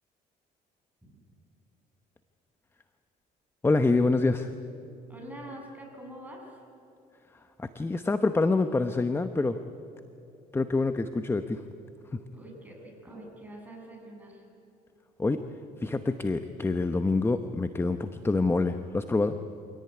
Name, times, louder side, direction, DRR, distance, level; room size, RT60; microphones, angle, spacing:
voice 1, 3.6-4.5 7.6-9.6 10.5-11.6 12.1-12.2 15.2-15.4 15.8-19.4, left 3 dB, 15° left, 9 dB, 0.9 m, -26 dB
voice 2, 5.1-6.6 12.3-14.4, right 1 dB, 10° right, -1 dB, 7.6 m, -45 dB
25.5 x 17.5 x 9.7 m, 2.9 s
cardioid pair, 110°, 17 cm